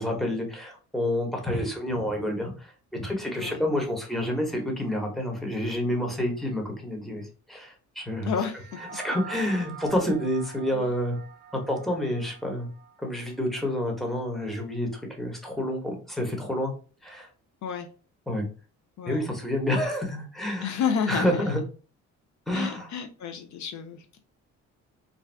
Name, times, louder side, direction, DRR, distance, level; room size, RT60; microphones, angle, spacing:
voice 1, 0.0-8.3 8.9-11.2 11.5-12.7 13.0-16.7 17.0-17.3 18.3-18.5 19.1-20.7 21.1-21.6 22.5-22.9, left 1 dB, ahead, 1 dB, 1.0 m, -29 dB
voice 2, 8.3-8.8 9.4-9.5 10.7-10.8 17.6-17.9 19.0-19.3 20.6-21.5 22.5-24.2, left 7 dB, 70° left, 6 dB, 0.5 m, -31 dB
sound 1, 8.5-13.2, right 7 dB, 30° right, 0.6 m, -44 dB
2.5 x 2.3 x 3.3 m, 0.37 s
cardioid pair, 90°, 30 cm